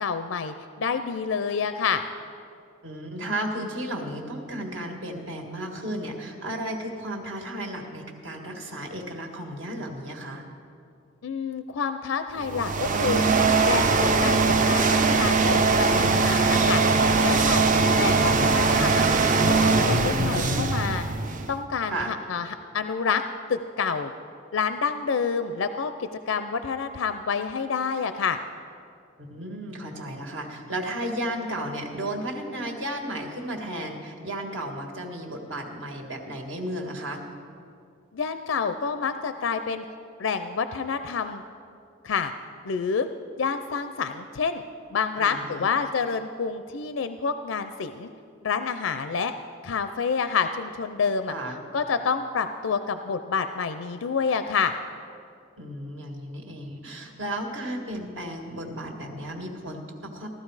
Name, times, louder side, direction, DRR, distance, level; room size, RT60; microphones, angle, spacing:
voice 1, 0.0-2.0 11.2-13.2 13.7-19.1 19.4-21.1 21.5-22.5 22.7-23.2 23.5-24.1 24.5-28.4 38.1-39.8 40.2-41.4 42.0-42.3 42.6-43.1 43.4-44.6 44.9-48.1 48.4-49.3 49.6-51.3 51.7-54.8, left 5 dB, 80° left, 10 dB, 0.5 m, -28 dB
voice 2, 2.8-10.4 21.9-22.2 29.2-37.3 45.2-45.7 51.3-51.6 55.6-60.3, right 1 dB, 70° right, 2 dB, 1.8 m, -34 dB
sound 1, 12.4-21.6, right 4 dB, 40° right, 0.6 m, -21 dB
16.0 x 12.5 x 4.8 m, 2.4 s
head